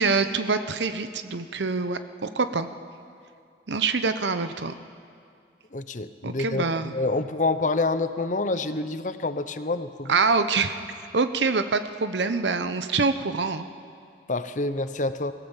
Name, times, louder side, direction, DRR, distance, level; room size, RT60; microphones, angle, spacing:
voice 1, 0.0-2.7 3.7-4.7 6.2-6.9 10.1-10.8 11.1-13.7, right 4 dB, 80° right, 10 dB, 0.9 m, -25 dB
voice 2, 5.7-10.1 14.3-15.3, left 2 dB, 45° left, 12 dB, 0.8 m, -27 dB
24.0 x 16.5 x 7.3 m, 2.3 s
head